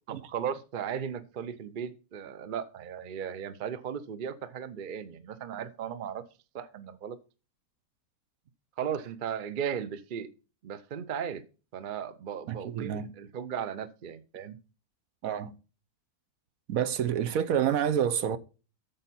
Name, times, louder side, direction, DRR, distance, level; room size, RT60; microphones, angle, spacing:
voice 1, 0.1-6.2 6.5-7.2 8.8-10.3 10.6-11.4 11.7-14.6, right 8 dB, 50° right, 0.6 m, -36 dB
voice 2, 12.5-13.1 15.2-15.5 16.7-18.4, right 9 dB, 70° right, 1.1 m, -28 dB
9.1 x 6.9 x 4.2 m
omnidirectional pair, 1.6 m